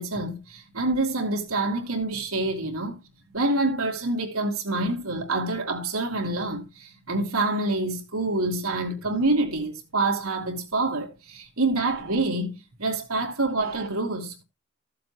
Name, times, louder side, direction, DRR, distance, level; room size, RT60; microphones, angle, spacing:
voice 1, 0.0-3.0 3.3-14.4, right 2 dB, 85° right, 2.7 m, -27 dB
14.5 x 7.5 x 3.0 m
head